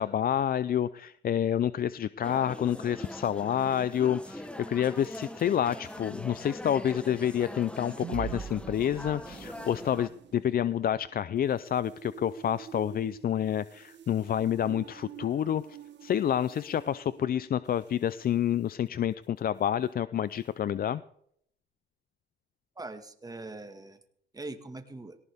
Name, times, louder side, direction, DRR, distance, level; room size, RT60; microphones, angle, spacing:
voice 1, 0.0-21.0, left 10 dB, 50° left, 16 dB, 0.5 m, -28 dB
sound 1, 2.2-10.1, left 1 dB, 5° left, 1.2 m, -42 dB
sound 2, 7.6-18.1, right 8 dB, 65° right, 1.3 m, -46 dB
voice 2, 22.8-24.0 24.3-25.2, right 2 dB, 20° right, 8 dB, 1.8 m, -42 dB
18.0 x 18.0 x 3.6 m, 0.69 s
cardioid pair, 90°, 20 cm